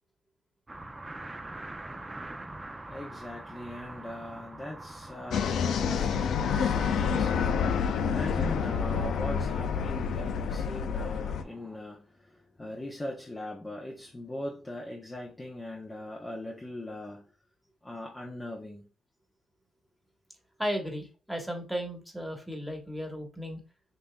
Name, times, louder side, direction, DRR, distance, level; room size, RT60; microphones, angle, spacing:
sound 1, 0.7-11.8, right 2 dB, 20° right, 0.5 m, -46 dB
voice 1, 2.9-17.3 17.8-18.9, left 1 dB, 20° left, 0.7 m, -40 dB
sound 2, 5.3-11.4, left 6 dB, 70° left, 0.4 m, -28 dB
voice 2, 20.6-23.6, equal, ahead, 1.4 m, -35 dB
5.4 x 2.7 x 2.3 m
supercardioid pair, 70°, 0 cm